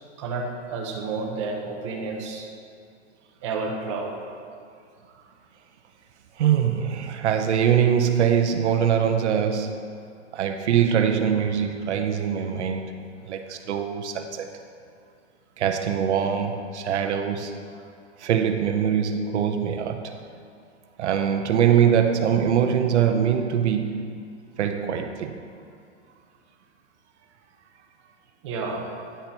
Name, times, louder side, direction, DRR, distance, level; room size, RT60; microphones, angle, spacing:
voice 1, 0.2-2.5 3.4-4.1 28.4-28.9, right 4 dB, 25° right, 0 dB, 0.7 m, -30 dB
voice 2, 6.4-9.9 10.3-14.5 15.6-17.6 18.2-20.2 21.0-24.1 24.6-25.4, right 8 dB, 70° right, 6 dB, 0.7 m, -23 dB
10.0 x 4.5 x 5.3 m, 2.3 s
supercardioid pair, 180°, 36 cm